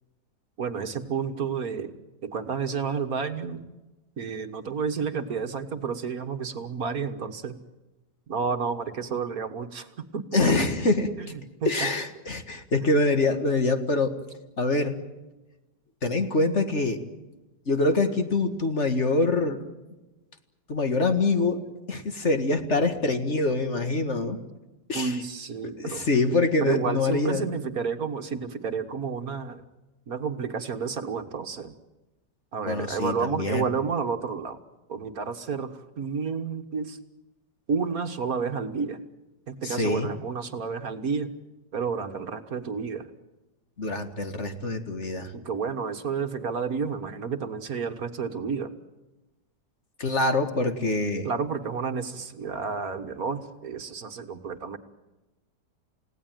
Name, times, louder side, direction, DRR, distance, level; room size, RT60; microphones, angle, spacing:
voice 1, 0.6-1.9 2.2-3.7 4.2-7.6 8.3-9.9 10.1-10.4 11.2-11.3 11.6-11.7 24.9-26.1 26.6-29.6 30.1-31.7 32.5-34.6 34.9-37.0 37.7-39.0 39.5-41.3 41.7-43.1 45.3-48.7 51.2-54.8, right 5 dB, 55° right, 8 dB, 1.8 m, -30 dB
voice 2, 10.3-11.1 11.7-14.2 14.6-15.0 16.0-17.0 17.7-19.7 20.7-24.4 24.9-25.2 25.8-27.5 32.7-33.7 39.6-40.1 43.8-45.3 50.0-51.3, left 2 dB, 40° left, 7 dB, 2.1 m, -25 dB
29.5 x 17.5 x 9.1 m, 1.1 s
omnidirectional pair, 1.8 m